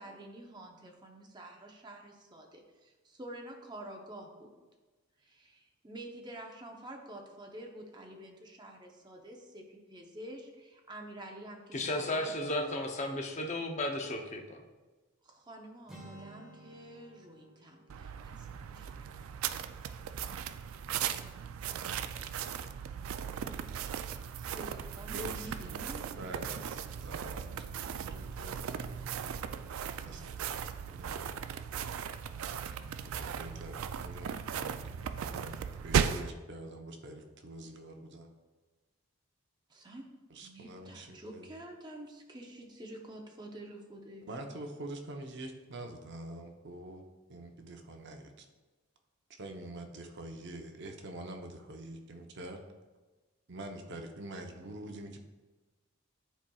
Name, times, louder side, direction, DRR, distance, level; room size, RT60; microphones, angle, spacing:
voice 1, 0.0-4.5 5.2-12.9 15.2-19.3 24.4-26.1 39.7-40.1 40.4-44.3, right 1 dB, 20° right, 1 dB, 0.7 m, -48 dB
voice 2, 11.7-14.6, left 1 dB, 35° left, 3 dB, 0.6 m, -34 dB
Acoustic guitar, 15.9-19.8, right 2 dB, 5° right, 1.1 m, -54 dB
sound 1, 17.9-36.3, right 7 dB, 70° right, 0.3 m, -37 dB
voice 3, 25.1-25.9 26.2-28.9 30.0-30.5 30.9-31.2 33.0-38.3 40.3-41.5 44.3-47.0 47.3-48.5 49.4-52.6 53.5-55.2, right 1 dB, 55° right, 3 dB, 0.7 m, -45 dB
10.0 x 4.3 x 2.3 m, 1.3 s
head